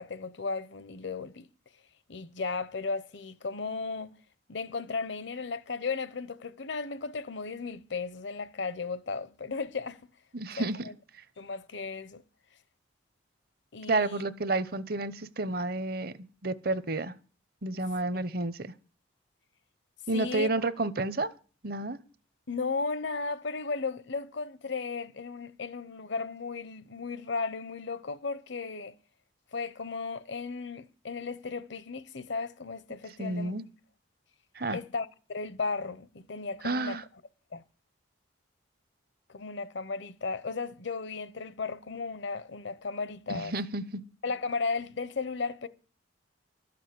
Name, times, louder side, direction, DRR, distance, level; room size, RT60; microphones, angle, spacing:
voice 1, 0.0-1.5 2.1-4.1 4.5-10.0 10.6-10.9 11.4-12.2 13.7-14.2 17.7-17.8 20.1-20.5 22.5-28.9 29.5-33.6 34.7-37.0 37.5-37.6 39.3-43.5 44.2-45.7, left 4 dB, 65° left, 0.8 m, -35 dB
voice 2, 10.3-10.8 11.2-11.3 13.9-16.1 16.4-17.1 17.6-18.7 20.1-21.3 21.6-22.0 33.2-33.6 34.5-34.8 36.6-37.0 43.3-44.0, right 2 dB, 50° right, 0.8 m, -30 dB
12.5 x 6.9 x 7.7 m
head